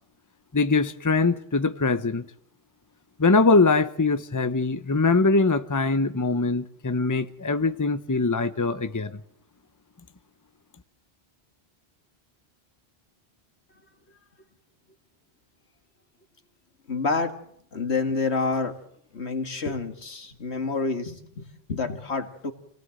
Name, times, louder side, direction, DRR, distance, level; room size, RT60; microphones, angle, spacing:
voice 1, 0.5-2.3 3.2-9.1, left 3 dB, 20° left, 0.9 m, -22 dB
voice 2, 16.9-17.3 17.7-18.8 19.1-22.5, left 4 dB, 85° left, 2.3 m, -28 dB
27.0 x 18.0 x 7.9 m
omnidirectional pair, 1.1 m